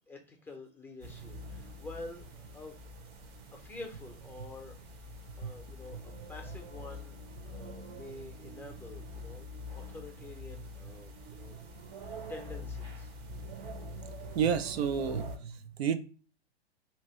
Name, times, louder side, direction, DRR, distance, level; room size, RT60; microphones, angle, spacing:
voice 1, 0.1-2.8 3.5-4.7 5.4-11.6 12.0-13.1, left 2 dB, 5° left, 0.6 m, -48 dB
sound 1, 1.0-15.4, equal, 30° right, 0.7 m, -45 dB
voice 2, 14.3-16.0, right 7 dB, 70° right, 0.5 m, -30 dB
2.9 x 2.8 x 3.0 m
hypercardioid pair, 110°, 32 cm